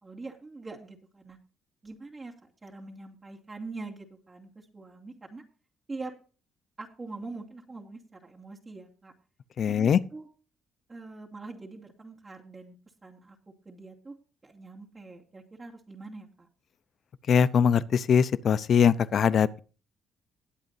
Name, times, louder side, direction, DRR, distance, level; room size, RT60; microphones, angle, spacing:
voice 1, 0.0-1.4 1.8-5.4 5.9-6.1 6.8-9.1 9.7-10.3 10.9-12.8 13.0-13.4 13.6-14.2 14.4-16.5, right 3 dB, 30° right, 2.6 m, -43 dB
voice 2, 9.6-10.0 17.3-19.6, left 7 dB, 60° left, 0.7 m, -22 dB
20.0 x 8.1 x 2.7 m
cardioid pair, 90°, 0 cm